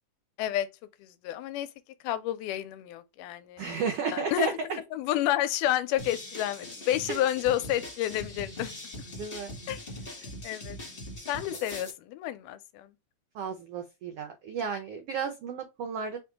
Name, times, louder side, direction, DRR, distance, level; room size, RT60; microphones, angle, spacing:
voice 1, 1.0-1.7 2.0-3.8 4.1-8.7 9.7-9.8 10.2-10.8 11.3-12.9, left 12 dB, 85° left, 2.1 m, -30 dB
voice 2, 3.6-4.8 7.1-7.2 9.1-9.5 13.3-16.2, right 5 dB, 90° right, 1.3 m, -33 dB
sound 1, 6.0-11.9, left 1 dB, 35° left, 0.9 m, -41 dB
4.9 x 2.6 x 3.6 m
omnidirectional pair, 3.6 m